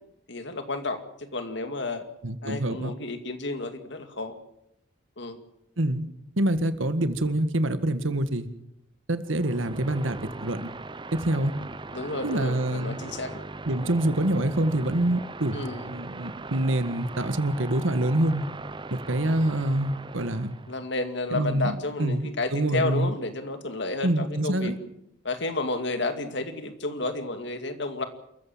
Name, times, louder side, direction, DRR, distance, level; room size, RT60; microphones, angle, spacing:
voice 1, 0.3-2.1 2.4-4.3 5.2-5.4 11.9-13.4 15.5-15.8 20.7-24.7 25.2-28.0, left 2 dB, 60° left, 8 dB, 2.3 m, -31 dB
voice 2, 2.2-2.9 5.8-6.1 6.4-8.5 9.1-10.7 11.1-11.5 12.2-13.0 13.7-18.4 18.9-20.6 21.3-23.1 24.0-24.8, right 1 dB, 75° right, 11 dB, 1.8 m, -26 dB
sound 1, 9.2-20.8, right 3 dB, 25° right, 0.7 m, -39 dB
28.0 x 15.0 x 7.4 m, 0.82 s
head